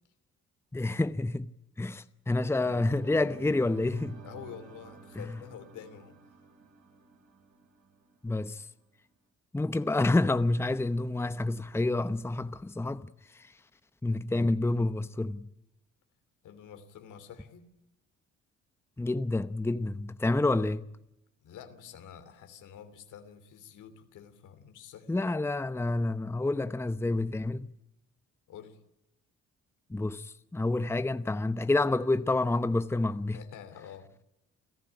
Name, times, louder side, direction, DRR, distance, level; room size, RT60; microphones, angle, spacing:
voice 1, 0.7-1.5 1.8-4.2 5.2-5.3 8.2-8.6 9.5-13.1 14.0-15.5 19.0-20.8 25.1-27.7 29.9-33.4, left 2 dB, 10° left, 0.8 m, -28 dB
sound 1, 2.6-8.5, right 6 dB, 70° right, 7.1 m, -50 dB
voice 2, 4.2-6.2 16.4-17.7 21.4-25.1 28.5-28.8 33.3-34.1, left 8 dB, 85° left, 3.0 m, -48 dB
29.0 x 14.0 x 10.0 m
cardioid pair, 90°, 30 cm